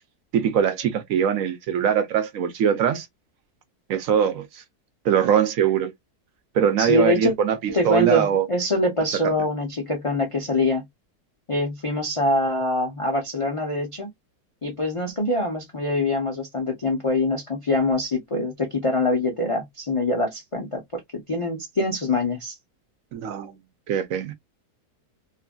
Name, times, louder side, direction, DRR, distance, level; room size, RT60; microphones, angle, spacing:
voice 1, 0.3-3.1 3.9-4.6 5.0-5.9 6.5-8.5 23.1-23.6 23.9-24.3, right 8 dB, 70° right, 0.9 m, -22 dB
voice 2, 6.8-7.3 7.7-10.8 11.5-14.1 14.6-22.6, left 2 dB, 60° left, 0.3 m, -24 dB
3.1 x 2.5 x 2.2 m
omnidirectional pair, 1.7 m